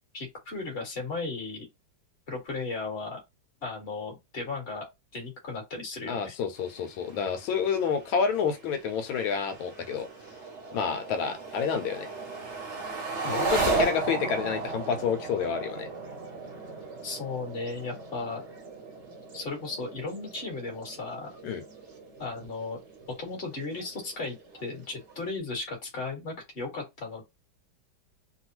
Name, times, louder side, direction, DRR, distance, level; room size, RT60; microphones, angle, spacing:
voice 1, 0.1-1.7 2.3-3.2 3.6-4.9 5.1-6.3 17.0-18.4 19.3-21.3 22.2-22.8 23.2-27.2, left 3 dB, 30° left, 1.5 m, -35 dB
voice 2, 6.1-10.1 10.7-12.1 13.2-15.9 21.4-21.6, left 6 dB, 90° left, 1.5 m, -29 dB
sound 1, 6.5-25.3, right 3 dB, 45° right, 1.0 m, -36 dB
3.4 x 2.3 x 2.9 m
omnidirectional pair, 2.1 m